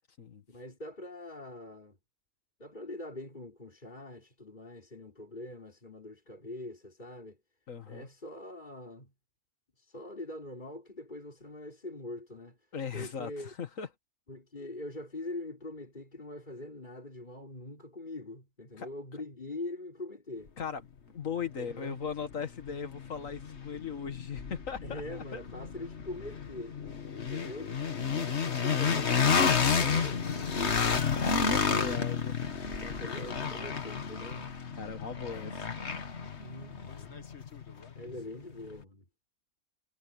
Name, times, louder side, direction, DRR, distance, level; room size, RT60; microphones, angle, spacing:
voice 1, 0.5-2.0 2.6-7.4 7.9-9.1 9.8-12.6 12.9-13.5 14.3-20.5 21.6-22.0 24.8-26.8 27.1-27.7 28.0-30.8 32.7-34.5 36.4-37.3 38.0-39.0, left 2 dB, 35° left, 4.4 m, -43 dB
voice 2, 7.7-8.1 12.7-13.9 18.8-18.9 20.6-20.8 21.1-25.4 31.2-32.4 34.8-35.7, left 6 dB, 80° left, 2.2 m, -38 dB
sound 1, 21.7-21.8 22.3-38.2, left 6 dB, 55° left, 1.7 m, -31 dB
omnidirectional pair, 1.4 m